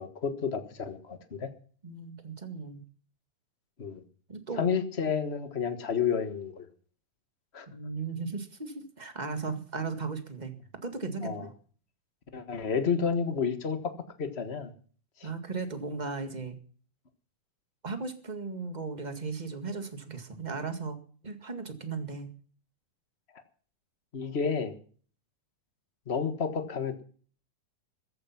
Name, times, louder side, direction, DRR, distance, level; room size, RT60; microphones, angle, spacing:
voice 1, 0.0-1.5 3.8-4.0 4.5-6.7 7.5-7.7 11.2-11.4 12.3-13.9 14.2-14.7 15.2-15.3 24.1-24.7 26.1-27.0, left 6 dB, 60° left, 8 dB, 0.6 m, -30 dB
voice 2, 1.8-2.8 4.3-4.7 7.7-10.5 10.8-11.5 15.2-16.6 17.8-21.0 21.2-22.3, right 4 dB, 20° right, 8 dB, 1.2 m, -36 dB
14.5 x 13.5 x 5.9 m, 0.43 s
omnidirectional pair, 3.7 m